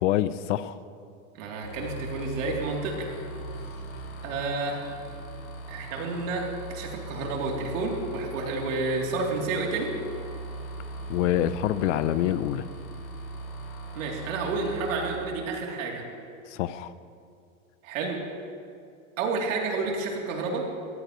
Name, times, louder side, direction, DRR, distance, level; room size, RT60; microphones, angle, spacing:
voice 1, 0.0-0.8 11.1-12.6 16.5-16.9, left 12 dB, 60° left, 15 dB, 0.6 m, -26 dB
voice 2, 1.3-3.1 4.2-4.9 5.7-6.4 6.7-9.9 13.9-16.0 17.8-18.2 19.2-20.6, right 3 dB, 65° right, -1 dB, 3.1 m, -30 dB
sound 1, 1.6-15.2, right 2 dB, 80° left, 2.8 m, -39 dB
20.0 x 15.5 x 3.1 m, 2.4 s
supercardioid pair, 150°, 41 cm